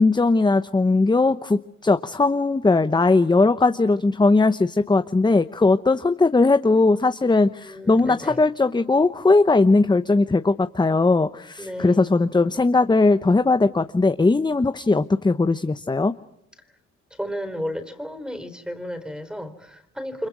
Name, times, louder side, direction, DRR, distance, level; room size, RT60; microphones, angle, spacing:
voice 1, 0.0-16.1, left 3 dB, 15° left, 10 dB, 0.9 m, -19 dB
voice 2, 7.6-8.4 11.6-12.2 16.6-16.7 17.1-20.3, equal, 5° right, 10 dB, 4.2 m, -33 dB
30.0 x 25.5 x 6.2 m, 0.79 s
cardioid pair, 90°, 30 cm